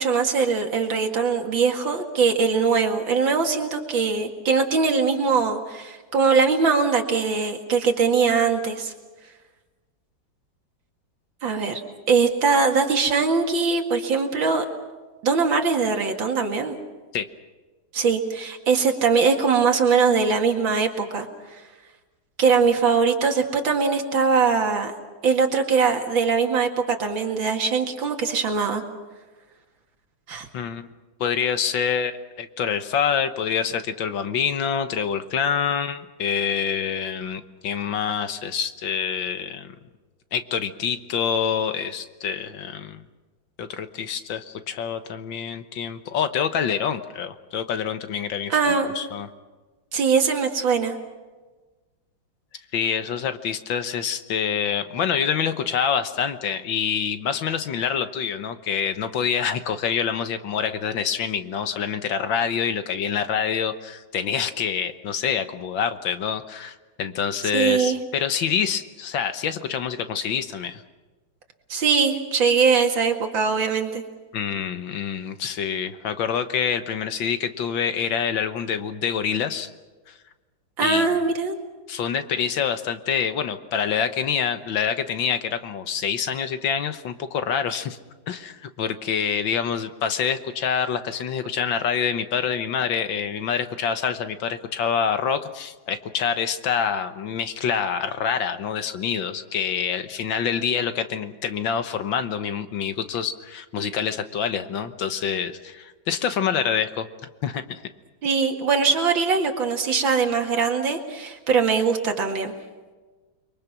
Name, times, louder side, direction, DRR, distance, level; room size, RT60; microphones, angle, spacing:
voice 1, 0.0-8.9 11.4-11.8 12.1-14.6 15.2-16.8 17.9-21.3 22.4-24.9 25.2-28.8 30.3-30.5 48.5-48.9 49.9-51.0 67.5-68.0 71.7-74.0 80.8-81.6 108.2-112.5, right 5 dB, 70° right, 4 dB, 2.8 m, -21 dB
voice 2, 31.2-39.8 40.3-43.0 43.6-49.3 52.7-70.8 74.3-79.7 80.1-80.2 80.8-81.1 81.9-88.0 88.3-107.1 107.4-107.8, left 7 dB, 70° left, 10 dB, 1.8 m, -26 dB
29.5 x 23.0 x 6.0 m, 1.3 s
omnidirectional pair, 2.2 m